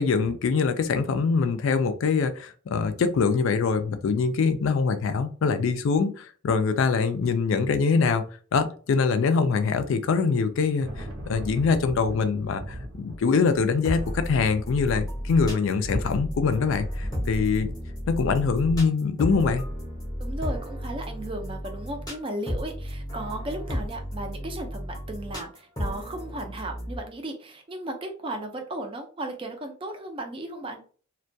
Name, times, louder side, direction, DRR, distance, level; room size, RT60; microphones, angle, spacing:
voice 1, 0.0-8.3 8.5-17.7 18.1-19.6, left 5 dB, 65° left, 10 dB, 0.3 m, -24 dB
Thunder, 10.3-19.6, equal, 65° right, 0.7 m, -41 dB
sound 1, 13.8-27.0, equal, 15° left, 0.7 m, -33 dB
voice 2, 20.2-30.8, right 1 dB, 25° right, 4 dB, 0.4 m, -35 dB
2.2 x 2.1 x 2.6 m, 0.41 s
head